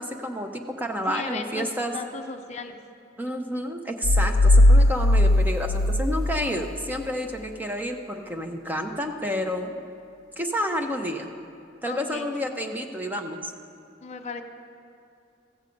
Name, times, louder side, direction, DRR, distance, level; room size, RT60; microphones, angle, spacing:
voice 1, 0.0-2.0 3.2-9.8 10.4-11.3 11.8-13.5, equal, 10° right, 4 dB, 0.6 m, -30 dB
voice 2, 1.1-1.7 1.9-2.8 11.9-12.3 14.0-14.4, left 4 dB, 35° left, 6 dB, 0.5 m, -35 dB
sound 1, 4.0-6.7, left 1 dB, 90° left, 0.5 m, -18 dB
15.0 x 8.0 x 5.2 m, 2.6 s
head